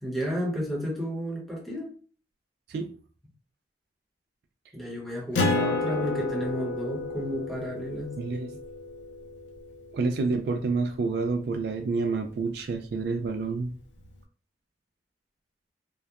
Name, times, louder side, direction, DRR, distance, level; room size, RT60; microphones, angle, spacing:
voice 1, 0.0-1.9 4.7-8.2, equal, ahead, -4 dB, 0.8 m, -32 dB
Acoustic guitar, 5.3-10.3, left 2 dB, 90° left, 0.5 m, -31 dB
voice 2, 8.2-8.6 9.9-13.7, right 4 dB, 60° right, 6 dB, 0.3 m, -28 dB
2.8 x 2.1 x 2.3 m, 0.41 s
head